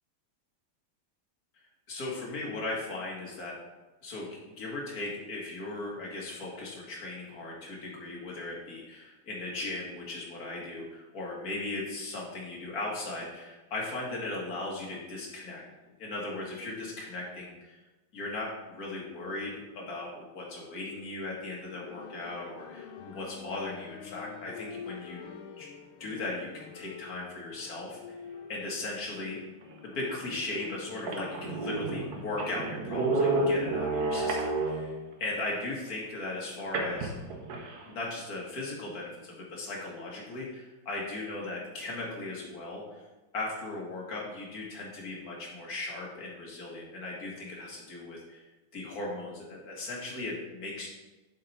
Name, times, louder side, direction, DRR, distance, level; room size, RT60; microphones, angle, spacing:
voice 1, 1.9-3.6 4.0-4.3 4.6-15.6 16.0-17.8 18.1-25.2 25.6-25.7 26.0-28.2 28.5-29.4 29.8-34.4 35.2-37.1 37.8-43.0 43.3-48.5 48.7-50.9, left 2 dB, 45° left, -3 dB, 2.2 m, -37 dB
sound 1, 21.7-31.7, left 6 dB, 90° left, 1.6 m, -47 dB
sound 2, 30.0-30.1 30.7-30.8 31.0-35.1 36.7-37.8, right 2 dB, 55° right, 1.3 m, -30 dB
7.4 x 5.8 x 4.3 m, 1.1 s
omnidirectional pair, 2.2 m